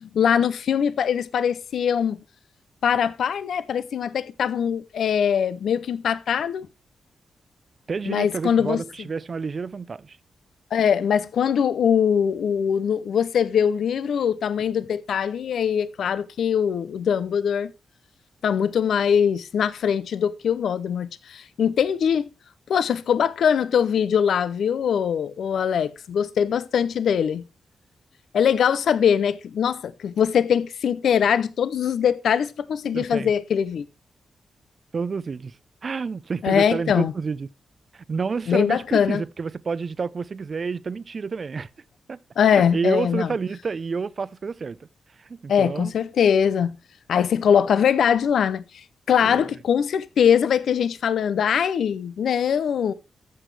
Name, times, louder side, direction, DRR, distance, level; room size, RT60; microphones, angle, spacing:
voice 1, 0.0-2.2 2.8-6.7 8.1-8.8 10.7-17.7 18.4-22.3 22.7-27.4 28.3-33.8 36.4-37.1 38.5-39.2 42.4-43.3 45.5-46.7 47.1-48.6 49.1-52.9, left 8 dB, 80° left, 0.6 m, -22 dB
voice 2, 7.9-10.2 32.9-33.3 34.9-35.5 35.8-37.5 37.9-41.7 42.1-42.2 42.5-44.8 45.2-45.9 49.2-49.4, right 5 dB, 50° right, 0.5 m, -29 dB
14.0 x 6.1 x 3.3 m
cardioid pair, 70°, 0 cm